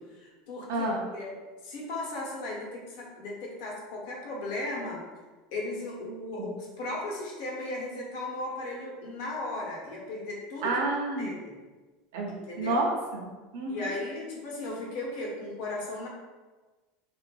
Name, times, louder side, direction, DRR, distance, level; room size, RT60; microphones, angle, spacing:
voice 1, 0.1-1.3 1.6-5.0 5.5-10.7 11.2-11.5 12.5-12.8 13.7-16.1, left 2 dB, 70° left, -3 dB, 0.8 m, -36 dB
voice 2, 0.7-1.1 6.4-6.5 10.6-11.3 12.1-14.0, right 2 dB, 80° right, -1 dB, 0.6 m, -30 dB
2.7 x 2.4 x 2.2 m, 1.3 s
supercardioid pair, 130°, 0 cm